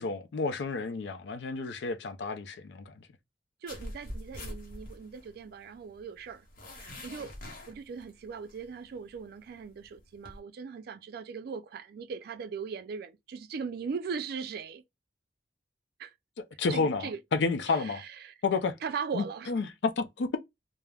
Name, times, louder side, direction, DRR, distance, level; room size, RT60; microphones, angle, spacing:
voice 1, 0.0-2.8 16.6-18.0 18.4-18.7 19.1-20.4, left 4 dB, 75° left, 0.4 m, -30 dB
voice 2, 3.6-6.5 6.7-7.3 7.7-14.8 16.0-16.1 16.7-17.2 17.7-18.3 18.8-19.5, right 5 dB, 60° right, 0.3 m, -39 dB
sound 1, 3.7-10.4, left 1 dB, 55° left, 0.8 m, -45 dB
2.2 x 2.0 x 3.3 m
head